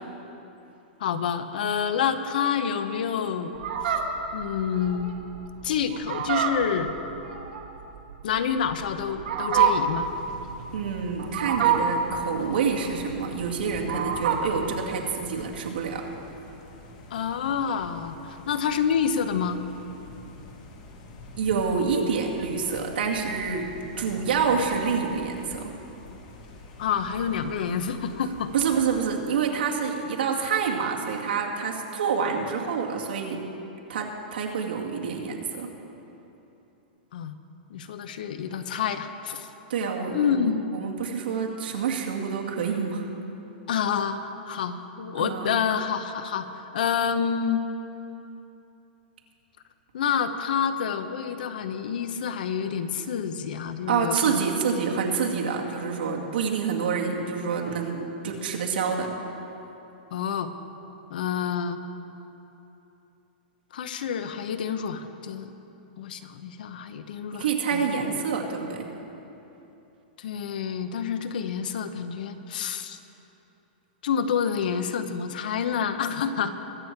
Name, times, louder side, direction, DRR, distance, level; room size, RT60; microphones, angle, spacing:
voice 1, 1.0-3.5 4.3-5.1 5.6-6.9 8.2-10.1 17.1-19.6 26.8-28.5 37.1-37.4 37.7-39.5 40.1-40.7 43.7-46.5 46.7-47.7 49.9-54.4 60.1-60.5 61.1-61.8 63.7-65.5 66.0-67.5 67.7-67.8 70.2-73.0 74.0-76.5, left 7 dB, 60° left, 10 dB, 0.8 m, -28 dB
Fowl, 3.5-14.6, right 7 dB, 65° right, 1.4 m, -27 dB
sound 1, 10.0-29.2, left 2 dB, 40° left, 1.6 m, -46 dB
voice 2, 10.7-16.0 21.4-23.7 24.0-25.7 28.5-33.4 33.9-35.7 39.7-43.1 45.2-45.5 53.9-59.1 67.4-68.9, right 6 dB, 85° right, -1 dB, 2.1 m, -27 dB
22.5 x 7.4 x 4.6 m, 3.0 s
supercardioid pair, 170°, 5 cm